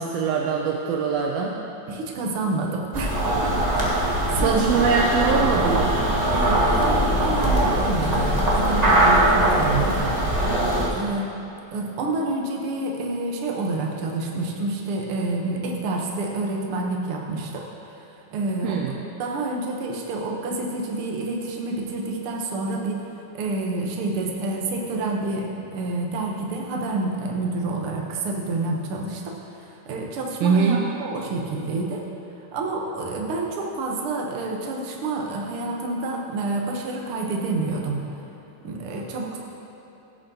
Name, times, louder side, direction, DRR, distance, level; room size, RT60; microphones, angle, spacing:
voice 1, 0.0-1.6 4.3-6.0 18.6-18.9 30.4-30.8, right 5 dB, 80° right, -1 dB, 1.5 m, -22 dB
voice 2, 1.9-4.7 6.3-10.1 10.6-11.3 11.7-17.7 18.3-18.8 19.2-23.0 23.3-32.0 32.5-38.0 38.6-39.4, right 2 dB, 60° right, 0 dB, 1.6 m, -28 dB
sound 1, 2.9-10.9, right 1 dB, 45° right, 0.5 m, -21 dB
16.5 x 7.7 x 2.9 m, 3.0 s
omnidirectional pair, 3.4 m